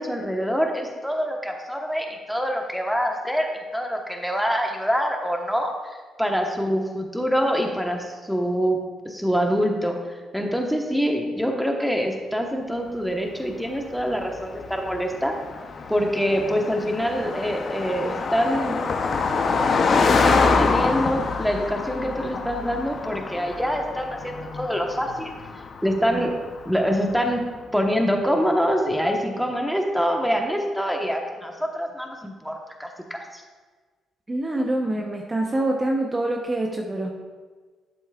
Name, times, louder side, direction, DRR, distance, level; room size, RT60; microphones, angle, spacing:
voice 1, 0.0-3.5 3.7-8.8 9.0-10.0 10.3-15.3 15.9-18.8 20.0-25.3 25.8-26.3 26.7-27.4 27.7-33.4, equal, ahead, 1 dB, 1.1 m, -25 dB
Car passing by, 13.6-27.3, left 4 dB, 50° left, 0.7 m, -26 dB
voice 2, 34.3-37.1, right 1 dB, 20° right, 1 dB, 0.8 m, -25 dB
11.5 x 6.9 x 2.4 m, 1.4 s
cardioid pair, 90°, 0 cm